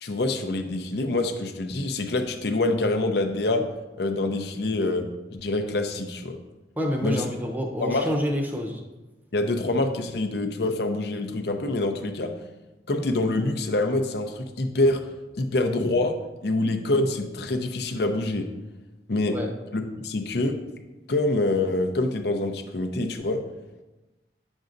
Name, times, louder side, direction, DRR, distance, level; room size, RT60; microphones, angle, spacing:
voice 1, 0.0-3.6 4.0-5.1 5.3-6.4 7.0-7.2 7.8-8.1 9.3-12.3 12.9-15.0 15.4-16.2 16.4-18.5 19.1-19.4 19.7-20.6 21.1-23.4, left 2 dB, 60° left, 5 dB, 0.7 m, -25 dB
voice 2, 6.8-8.8 19.3-19.5, equal, 10° right, 1 dB, 0.7 m, -27 dB
9.2 x 6.1 x 2.6 m, 1.1 s
head